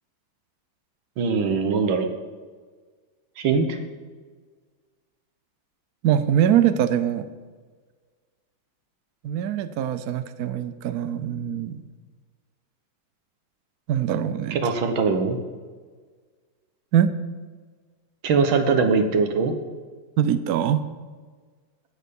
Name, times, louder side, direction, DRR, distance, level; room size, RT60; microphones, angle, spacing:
voice 1, 1.2-2.1 3.4-3.8 14.5-15.4 18.2-19.5, right 5 dB, 85° right, 6 dB, 2.0 m, -21 dB
voice 2, 6.0-7.3 9.2-11.8 13.9-14.6 16.9-17.1 20.2-20.8, right 10 dB, 65° right, 12 dB, 1.0 m, -22 dB
17.5 x 6.7 x 5.3 m, 1.5 s
omnidirectional pair, 2.2 m